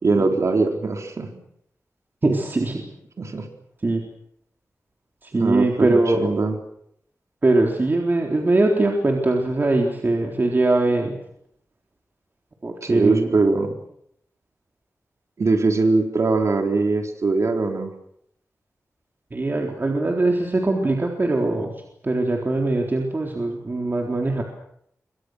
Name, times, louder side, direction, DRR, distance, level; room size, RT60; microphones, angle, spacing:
voice 1, 0.0-1.3 3.2-3.5 5.3-6.6 12.8-13.7 15.4-17.9, right 3 dB, 65° right, 4 dB, 4.1 m, -21 dB
voice 2, 2.2-2.9 3.8-4.0 5.3-6.3 7.4-11.1 12.6-13.3 19.3-21.7 22.0-24.4, right 2 dB, 35° right, 1 dB, 3.8 m, -21 dB
27.5 x 24.5 x 6.5 m, 0.72 s
wide cardioid pair, 100°, 6 cm